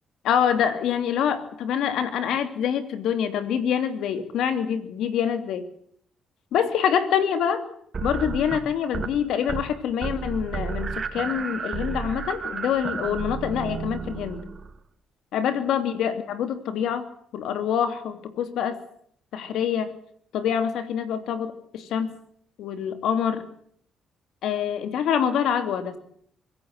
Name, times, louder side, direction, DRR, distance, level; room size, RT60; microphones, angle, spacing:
voice 1, 0.2-5.6 6.5-7.6 8.0-14.4 15.3-17.1 17.3-18.8 19.3-19.9 20.3-22.2 22.6-23.4 24.4-26.0, left 8 dB, 80° left, 9 dB, 2.9 m, -25 dB
sound 1, 7.9-9.1 9.4-9.7 10.0-14.8, right 5 dB, 40° right, 3.1 m, -32 dB
24.5 x 17.0 x 8.1 m, 0.63 s
cardioid pair, 90°, 0 cm